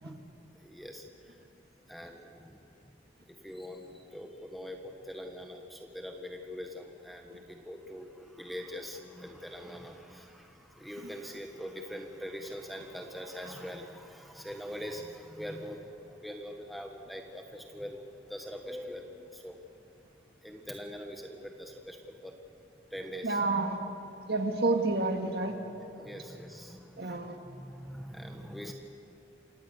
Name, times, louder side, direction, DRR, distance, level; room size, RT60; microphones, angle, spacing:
voice 1, 0.6-1.0 1.9-2.6 3.3-19.6 20.4-22.3 22.9-23.4 25.9-28.7, equal, ahead, 2 dB, 1.4 m, -43 dB
voice 2, 23.2-23.8 24.3-25.6 27.0-27.4, right 2 dB, 60° right, 3 dB, 2.1 m, -29 dB
28.0 x 17.5 x 6.7 m, 2.9 s
head